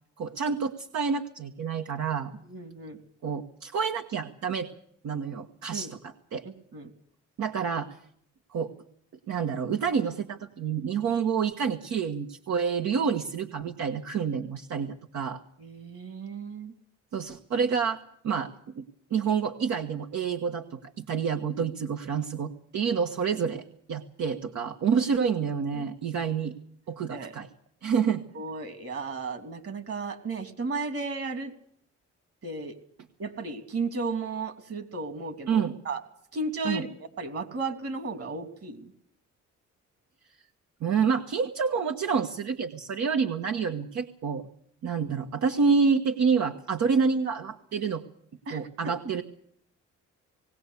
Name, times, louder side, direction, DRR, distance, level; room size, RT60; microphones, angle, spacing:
voice 1, 0.2-2.3 3.2-4.7 5.0-6.4 7.4-7.9 8.5-8.7 9.3-15.4 17.1-18.8 19.1-23.6 23.9-26.5 26.9-27.5 27.8-28.2 35.5-35.7 36.6-36.8 40.8-44.5 44.8-48.0 48.5-49.2, right 6 dB, 70° right, 4 dB, 1.5 m, -28 dB
voice 2, 2.5-3.0 5.7-5.9 6.4-6.9 15.6-16.7 24.9-25.0 25.7-25.8 27.1-27.3 28.3-31.5 32.4-32.7 33.2-36.0 36.3-36.9 37.2-38.9 48.5-48.6, right 3 dB, 50° right, 9 dB, 3.1 m, -34 dB
20.0 x 18.0 x 8.3 m, 0.65 s
cardioid pair, 90°, 30 cm